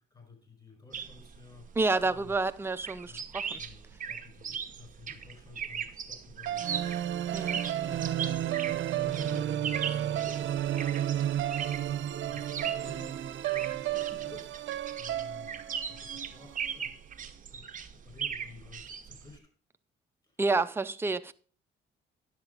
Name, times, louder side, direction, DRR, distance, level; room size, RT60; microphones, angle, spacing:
voice 1, 0.0-2.3 3.0-6.9 7.8-10.9 11.7-13.3 13.7-16.9 17.2-17.7 18.0-19.5 20.2-20.4, left 4 dB, 20° left, 5.1 m, -52 dB
sound 1, 0.9-19.4, right 7 dB, 40° right, 1.0 m, -39 dB
voice 2, 1.8-3.6 7.3-7.6 20.4-21.3, right 3 dB, 10° right, 0.5 m, -29 dB
sound 2, 6.4-16.7, right 12 dB, 70° right, 0.7 m, -32 dB
10.5 x 7.4 x 3.9 m
cardioid pair, 90°, 20 cm